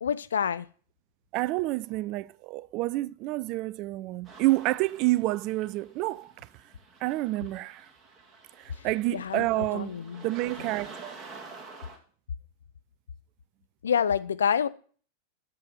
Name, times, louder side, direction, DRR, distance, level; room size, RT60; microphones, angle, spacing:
voice 1, 0.0-0.7 8.8-8.9 9.1-10.3 13.8-14.7, left 7 dB, 65° left, 0.5 m, -28 dB
voice 2, 1.3-6.3 7.0-7.9 8.6-10.0 10.2-11.2, right 19 dB, 40° right, 0.4 m, -29 dB
sound 1, 4.2-12.0, right 4 dB, 20° right, 2.1 m, -49 dB
7.9 x 6.9 x 6.6 m
figure-of-eight pair, 90°, 0 cm